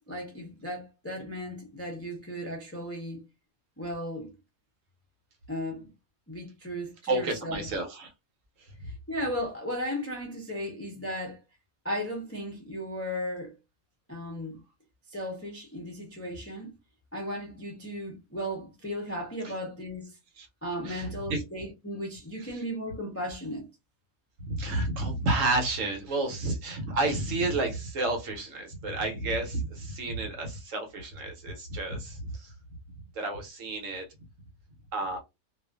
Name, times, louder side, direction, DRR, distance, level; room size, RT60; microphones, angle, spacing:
voice 1, 0.1-3.2 3.8-4.3 5.5-5.9 6.3-7.5 8.8-11.4 11.8-13.5 14.1-14.6 15.1-16.7 17.1-20.2 20.6-23.7, equal, 20° left, 0.4 m, -35 dB
voice 2, 7.0-8.1 8.6-8.7 19.4-19.5 20.4-20.5 20.8-21.4 22.4-22.6 24.4-32.5 33.1-34.1 34.9-35.2, right 2 dB, 65° right, 1.0 m, -31 dB
2.4 x 2.4 x 2.3 m
omnidirectional pair, 1.6 m